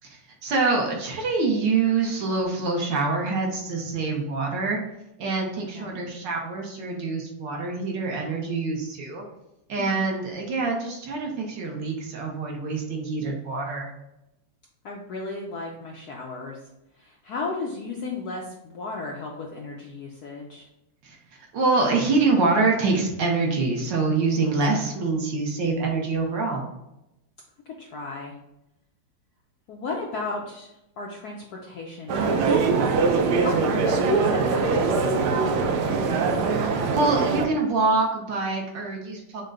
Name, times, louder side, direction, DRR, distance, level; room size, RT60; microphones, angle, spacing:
voice 1, 0.4-4.8 5.2-9.2 9.7-13.9 21.0-21.1 21.5-26.6 36.9-39.4, right 3 dB, 65° right, 0 dB, 1.5 m, -25 dB
voice 2, 14.8-20.6 27.7-28.4 29.7-35.8, left 3 dB, 70° left, -1 dB, 0.9 m, -35 dB
sound 1, 32.1-37.5, right 4 dB, 85° right, 1.5 m, -22 dB
6.4 x 2.2 x 3.7 m, 0.88 s
omnidirectional pair, 2.3 m